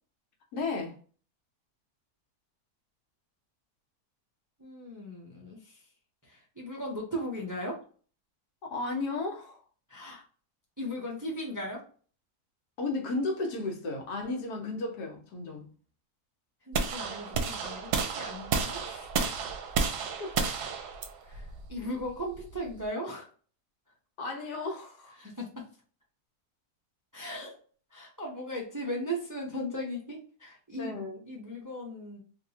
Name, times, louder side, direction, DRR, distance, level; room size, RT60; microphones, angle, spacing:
voice 1, 0.5-1.0 8.6-9.6 12.8-15.7 20.2-20.5 24.2-25.2 30.8-31.2, left 3 dB, 75° left, 1.3 m, -34 dB
voice 2, 4.6-5.8 6.2-7.8 9.9-10.2 10.8-11.8 16.7-19.1 21.2-23.3 25.2-25.6 27.1-27.6 27.9-31.0 31.3-32.2, equal, 20° right, 0.5 m, -37 dB
sound 1, 16.7-22.8, right 5 dB, 85° right, 1.2 m, -32 dB
3.4 x 2.8 x 2.7 m
omnidirectional pair, 1.7 m